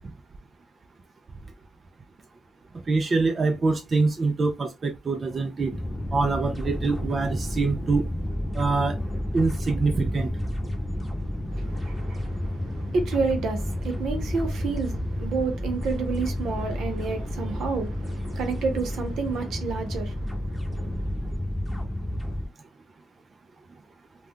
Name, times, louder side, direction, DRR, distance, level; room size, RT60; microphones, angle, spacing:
voice 1, 2.9-5.7 6.1-8.0 8.5-9.0 9.3-10.3, right 3 dB, 35° right, 0.4 m, -24 dB
sound 1, 5.7-22.5, left 1 dB, ahead, 0.9 m, -31 dB
voice 2, 11.5-21.1, right 4 dB, 75° right, 0.8 m, -30 dB
2.3 x 2.2 x 3.5 m
cardioid pair, 90°, 0 cm